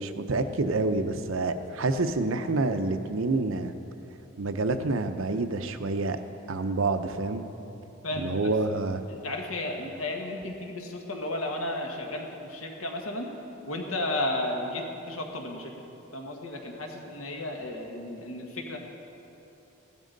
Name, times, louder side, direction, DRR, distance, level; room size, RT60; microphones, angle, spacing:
voice 1, 0.0-3.7 4.4-6.2 6.5-7.4 8.2-9.0, right 3 dB, 70° right, 8 dB, 0.7 m, -28 dB
voice 2, 8.0-8.5 9.1-13.3 13.7-15.7 16.1-18.8, left 1 dB, 75° left, 1 dB, 1.5 m, -33 dB
15.5 x 12.5 x 4.0 m, 2.9 s
head